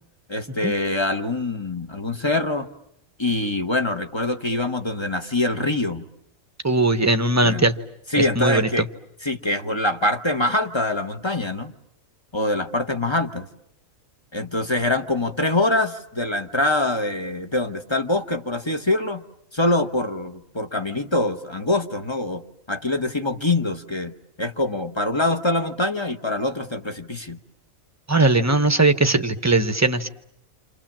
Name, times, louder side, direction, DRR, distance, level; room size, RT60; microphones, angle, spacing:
voice 1, 0.3-2.7 3.2-6.0 7.4-7.6 8.1-8.9 9.2-11.7 12.3-13.5 14.3-19.2 19.5-22.4 22.7-24.1 24.4-27.4, left 2 dB, 20° left, 6 dB, 1.1 m, -24 dB
voice 2, 6.6-7.7 8.2-8.9 28.1-30.1, right 2 dB, 15° right, 10 dB, 0.9 m, -19 dB
29.0 x 27.0 x 7.4 m, 0.80 s
omnidirectional pair, 1.4 m